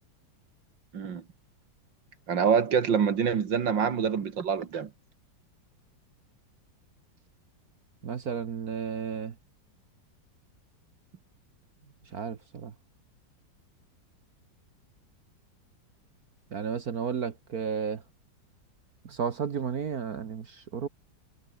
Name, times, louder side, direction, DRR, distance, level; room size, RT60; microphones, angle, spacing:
voice 1, 2.3-4.9, right 7 dB, 75° right, 2.5 m, -26 dB
voice 2, 8.0-9.3 12.1-12.7 16.5-18.0 19.1-20.9, right 6 dB, 55° right, 1.8 m, -33 dB
omnidirectional pair, 2.0 m